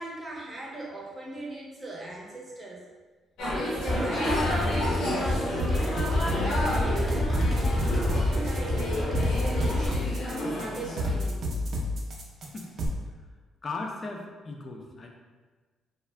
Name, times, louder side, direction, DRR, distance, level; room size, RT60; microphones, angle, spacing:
voice 1, 0.0-2.9 3.5-4.9 5.5-9.8 10.2-11.4, right 2 dB, 25° right, -3 dB, 0.7 m, -38 dB
sound 1, 3.4-11.1, left 1 dB, 90° left, 0.7 m, -31 dB
sound 2, 3.8-9.9, left 1 dB, 5° left, 0.7 m, -28 dB
sound 3, 5.6-12.9, left 1 dB, 60° right, 0.5 m, -30 dB
voice 2, 12.4-12.9 13.6-15.1, left 3 dB, 35° left, 1 dB, 0.4 m, -37 dB
2.4 x 2.1 x 3.2 m, 1.4 s
cardioid pair, 90°, 0 cm